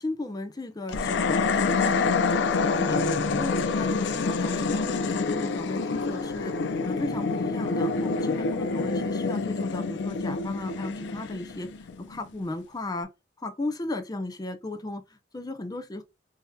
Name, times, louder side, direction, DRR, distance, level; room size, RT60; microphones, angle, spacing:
voice 1, 0.0-6.6 6.8-11.7 12.0-13.1 13.4-16.0, left 2 dB, 20° left, 0.5 m, -35 dB
sound 1, 0.9-12.3, left 4 dB, 70° left, 0.4 m, -27 dB
3.5 x 2.8 x 2.2 m
head